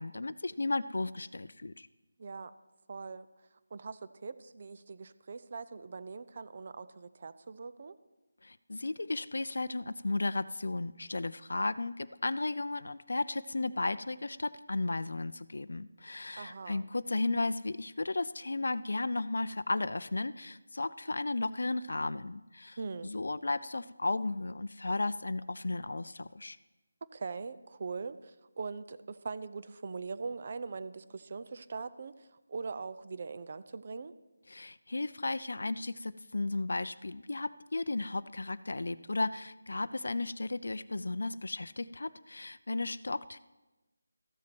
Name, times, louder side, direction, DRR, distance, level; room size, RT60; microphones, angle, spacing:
voice 1, 0.0-1.9 8.4-22.8 23.0-26.6 34.5-43.4, left 2 dB, 70° left, 14 dB, 0.4 m, -34 dB
voice 2, 2.2-2.5 2.9-3.3 3.7-8.0 16.4-16.8 22.8-23.1 27.1-34.2, right 4 dB, 40° right, 14 dB, 0.6 m, -41 dB
14.0 x 7.4 x 6.0 m, 1.1 s
figure-of-eight pair, 170°, 0 cm